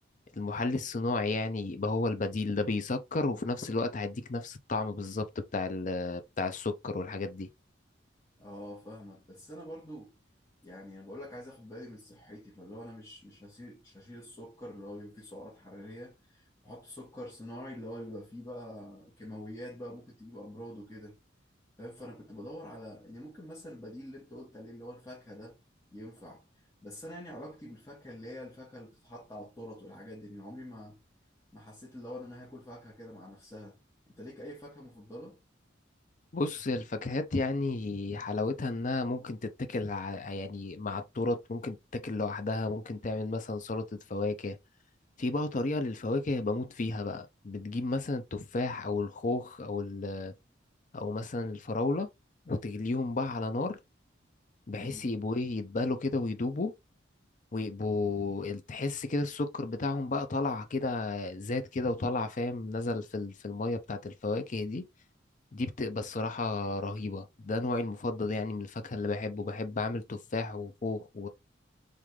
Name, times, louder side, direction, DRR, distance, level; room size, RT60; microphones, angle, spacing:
voice 1, 0.3-5.3 5.5-7.5 36.3-43.8 44.1-44.6 45.2-50.3 50.9-52.1 52.5-53.8 54.7-56.7 57.5-64.8 65.5-71.3, left 3 dB, 40° left, 0.5 m, -32 dB
voice 2, 8.4-10.1 10.6-21.2 21.8-25.6 25.9-26.4 26.8-31.0 31.5-33.8 34.1-35.4 54.8-55.1, equal, 15° left, 1.7 m, -45 dB
3.8 x 3.6 x 3.2 m
head